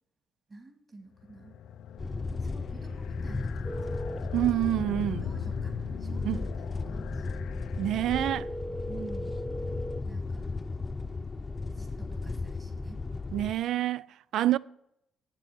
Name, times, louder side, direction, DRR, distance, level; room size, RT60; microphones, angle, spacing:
voice 1, 0.5-1.5 2.4-4.0 5.2-7.4 8.9-9.4 10.0-10.6 11.7-13.0, right 3 dB, 35° right, 2.0 m, -49 dB
sound 1, 1.1-8.6, left 9 dB, 80° left, 0.5 m, -41 dB
sound 2, 2.0-13.5, left 3 dB, 25° left, 0.7 m, -35 dB
sound 3, 3.6-4.2 8.1-10.0, equal, 15° right, 0.7 m, -38 dB
voice 2, 4.3-5.3 6.2-6.4 7.8-8.5 13.3-14.1 14.3-14.6, right 13 dB, 80° right, 0.3 m, -27 dB
8.6 x 7.3 x 8.2 m
cardioid pair, 90°, 0 cm